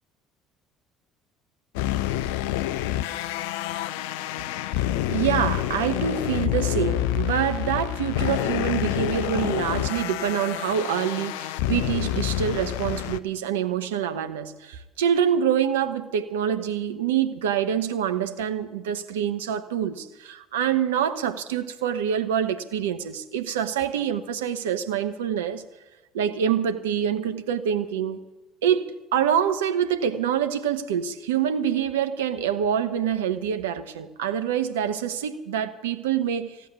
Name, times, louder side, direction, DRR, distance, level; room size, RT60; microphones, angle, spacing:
sound 1, 1.8-13.2, left 13 dB, 70° left, 0.5 m, -27 dB
voice 1, 5.1-25.6 26.1-28.2 28.6-36.6, right 9 dB, 75° right, 0.9 m, -26 dB
15.0 x 8.5 x 10.0 m
figure-of-eight pair, 60°, 0 cm